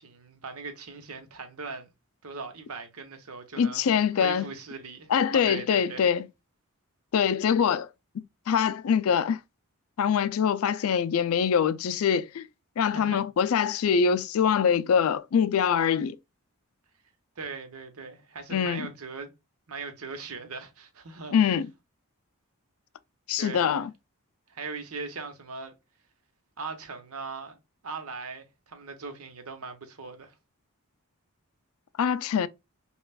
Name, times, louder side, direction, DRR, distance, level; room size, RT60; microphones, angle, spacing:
voice 1, 0.0-1.9 2.2-3.9 4.1-6.0 12.8-13.2 17.4-19.3 19.7-21.4 23.4-23.8 24.5-25.7 26.6-27.6 27.8-30.3, right 4 dB, 75° right, 0.9 m, -39 dB
voice 2, 3.6-4.5 5.1-6.3 7.1-7.9 8.1-9.4 10.0-12.5 12.8-16.2 18.5-18.9 21.3-21.7 23.3-23.9 32.0-32.5, left 7 dB, 70° left, 0.3 m, -24 dB
5.4 x 2.4 x 2.3 m
head